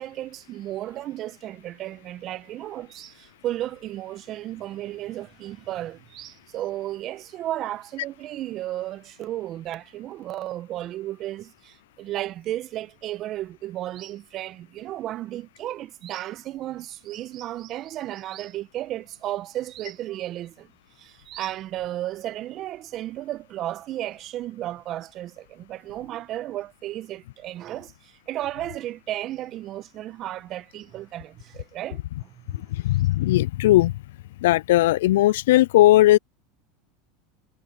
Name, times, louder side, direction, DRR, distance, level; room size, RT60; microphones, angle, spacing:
voice 1, 0.0-20.7 21.0-32.6, right 14 dB, 45° right, 1.2 m, -34 dB
voice 2, 32.7-33.9 34.4-36.2, left 15 dB, 75° left, 0.4 m, -18 dB
hypercardioid pair, 95°, 0 cm